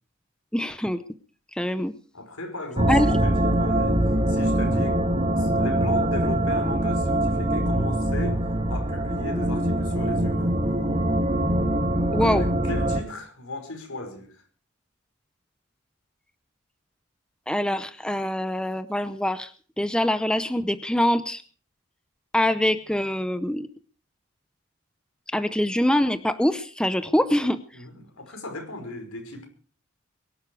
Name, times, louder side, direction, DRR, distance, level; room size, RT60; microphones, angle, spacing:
voice 1, 0.5-1.0 1.5-1.9 2.9-3.1 12.1-12.5 17.5-19.5 19.8-21.4 22.3-23.7 25.3-27.6, left 1 dB, 5° left, 0.7 m, -24 dB
voice 2, 2.1-5.0 5.3-10.6 12.2-14.4 27.7-29.5, left 2 dB, 85° left, 5.5 m, -36 dB
sound 1, 2.8-13.0, right 1 dB, 25° right, 1.5 m, -23 dB
22.5 x 12.0 x 4.8 m
head